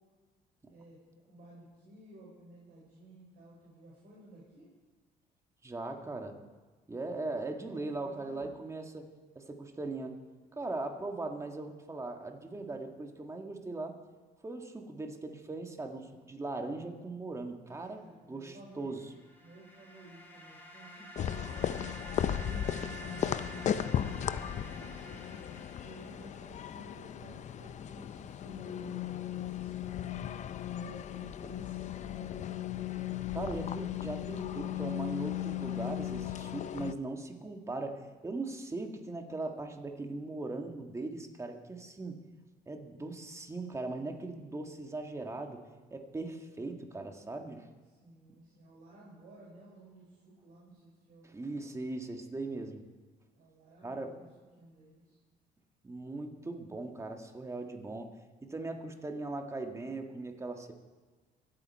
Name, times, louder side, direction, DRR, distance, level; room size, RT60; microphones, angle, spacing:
voice 1, 0.7-1.0 1.3-4.7 7.6-8.5 17.7-19.0 19.4-21.6 22.2-25.5 25.8-30.2 30.7-32.8 48.0-51.8 53.3-54.3 54.6-55.2, right 1 dB, 60° right, -7 dB, 4.7 m, -54 dB
voice 2, 5.6-6.4 6.9-9.1 9.3-10.2 10.5-14.0 14.4-18.0 18.3-19.0 33.3-42.2 42.7-45.6 45.9-47.7 51.2-52.9 53.8-54.2 55.8-58.1 58.4-60.7, right 2 dB, 15° right, 4 dB, 1.6 m, -39 dB
sound 1, 19.0-26.7, right 1 dB, 10° left, 3.5 m, -49 dB
sound 2, 21.2-36.9, left 10 dB, 45° left, 0.5 m, -36 dB
25.5 x 8.5 x 4.6 m, 1.3 s
cardioid pair, 110°, 17 cm